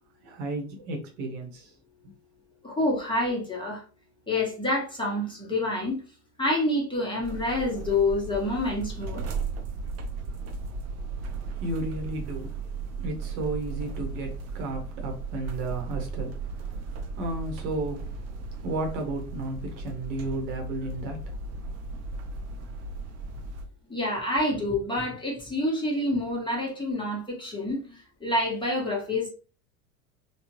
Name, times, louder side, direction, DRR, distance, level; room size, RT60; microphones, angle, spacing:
voice 1, 0.2-1.7 11.3-12.5 13.0-18.2 18.6-21.4, right 2 dB, 50° right, 2 dB, 1.0 m, -33 dB
voice 2, 2.6-3.8 4.3-6.0 6.4-9.2 23.9-29.3, left 1 dB, 10° left, -3 dB, 1.2 m, -27 dB
sound 1, 7.2-23.6, right 4 dB, 35° right, 0.7 m, -36 dB
3.5 x 2.4 x 2.9 m, 0.35 s
figure-of-eight pair, 75°, 46 cm